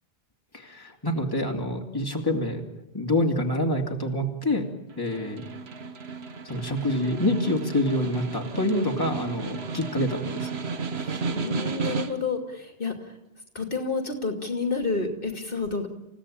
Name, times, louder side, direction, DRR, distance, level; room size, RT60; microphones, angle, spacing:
voice 1, 0.5-2.6 2.9-4.7 5.0-5.5 6.4-10.5 11.1-11.2, left 1 dB, 20° left, 1 dB, 2.8 m, -26 dB
Snare drum, 4.9-12.4, right 4 dB, 70° right, 1.5 m, -33 dB
voice 2, 10.0-10.3 11.3-13.2 13.5-15.9, left 4 dB, 55° left, 4 dB, 2.8 m, -30 dB
29.0 x 16.5 x 8.8 m, 0.96 s
omnidirectional pair, 1.1 m